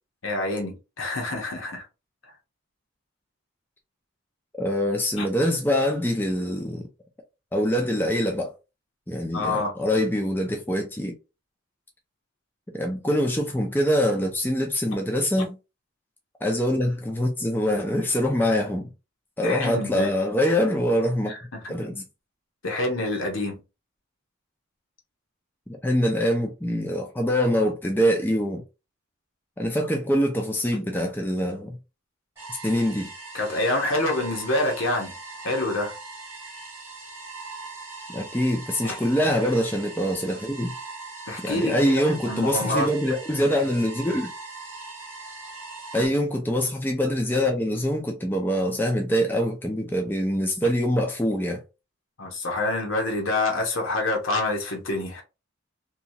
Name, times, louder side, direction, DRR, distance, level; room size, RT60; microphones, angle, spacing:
voice 1, 0.2-1.9 5.2-5.3 9.3-9.7 15.4-15.5 19.4-20.1 20.4-20.5 21.3-21.8 22.6-23.6 33.3-35.1 35.4-35.9 38.8-39.0 41.3-42.9 46.0-46.1 52.2-55.2, left 2 dB, 75° left, 1.0 m, -27 dB
voice 2, 4.6-6.9 7.5-8.5 9.1-11.1 12.7-15.6 16.4-18.9 19.4-21.3 21.7-22.0 25.8-28.6 29.6-31.8 32.6-33.1 38.1-40.7 41.4-44.3 45.9-51.6, equal, 10° left, 0.4 m, -24 dB
sound 1, 32.4-46.1, right 3 dB, 10° right, 0.9 m, -40 dB
2.8 x 2.3 x 2.7 m
head